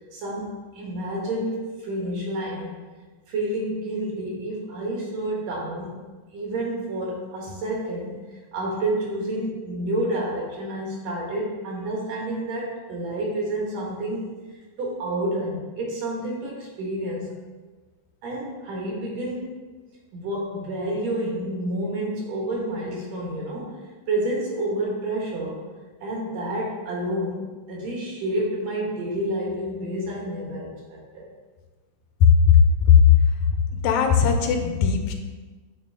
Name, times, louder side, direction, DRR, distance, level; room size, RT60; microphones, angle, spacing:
voice 1, 0.1-2.8 3.3-6.0 6.3-8.1 8.5-14.3 14.5-17.3 18.2-19.6 20.1-23.8 24.1-25.6 26.0-27.4 27.7-31.3, right 1 dB, 65° right, -3 dB, 2.4 m, -29 dB
voice 2, 32.2-32.6 32.9-33.0 33.7-35.1, left 7 dB, 80° left, 5 dB, 1.9 m, -17 dB
8.7 x 3.2 x 3.6 m, 1.3 s
omnidirectional pair, 3.4 m